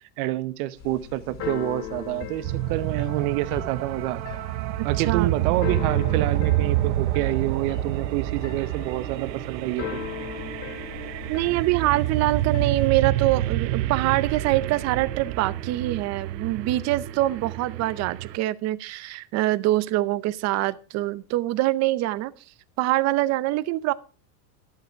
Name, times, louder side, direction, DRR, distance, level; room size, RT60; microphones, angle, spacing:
voice 1, 0.2-4.2 4.8-10.0, right 15 dB, 60° right, 14 dB, 1.1 m, -28 dB
Keyboard (musical), 0.8-12.9, left 8 dB, 35° left, 2.6 m, -38 dB
sound 1, 2.4-18.4, right 15 dB, 90° right, 0.7 m, -28 dB
voice 2, 5.0-5.3 11.3-22.3 22.8-23.9, right 16 dB, 35° right, 17 dB, 0.7 m, -24 dB
11.5 x 11.5 x 4.6 m, 0.35 s
supercardioid pair, 145°, 49 cm